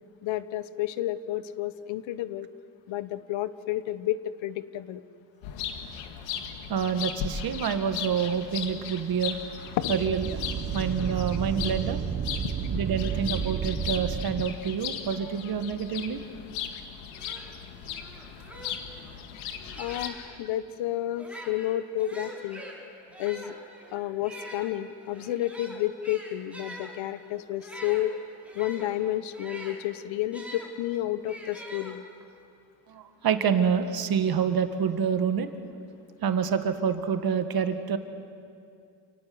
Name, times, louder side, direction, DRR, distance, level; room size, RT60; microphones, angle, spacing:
voice 1, 0.2-2.5 2.9-5.0 9.8-10.0 19.8-22.6 23.2-23.5 23.9-28.1 28.5-32.0, left 13 dB, 65° left, 14 dB, 1.2 m, -31 dB
sound 1, 5.4-20.1, left 8 dB, 85° left, 2.2 m, -37 dB
voice 2, 6.7-9.4 9.9-10.4 10.7-12.0 12.7-16.2 32.9-35.5 36.2-38.0, right 7 dB, 45° right, 8 dB, 1.9 m, -27 dB
sound 2, 9.7-14.5, right 7 dB, 25° right, 0.9 m, -32 dB
sound 3, 16.8-16.9 17.1-20.4 21.1-30.7 31.3-32.4, equal, 5° right, 5.0 m, -44 dB
29.0 x 18.0 x 7.9 m, 2.4 s
cardioid pair, 100°, 49 cm